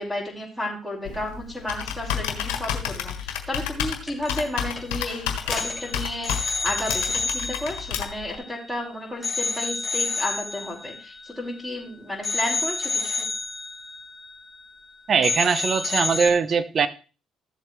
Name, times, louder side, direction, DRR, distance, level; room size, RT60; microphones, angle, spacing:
voice 1, 0.0-13.2, left 1 dB, ahead, 4.9 m, -32 dB
Computer keyboard, 1.0-8.4, left 9 dB, 80° left, 1.5 m, -31 dB
sound 1, 4.1-4.5 4.8-5.0 5.4-8.8 9.2-11.8 12.2-14.9 15.2-16.3, left 3 dB, 20° left, 3.3 m, -30 dB
voice 2, 15.1-16.9, right 5 dB, 50° right, 1.0 m, -21 dB
14.5 x 7.3 x 3.3 m
hypercardioid pair, 55°, 0 cm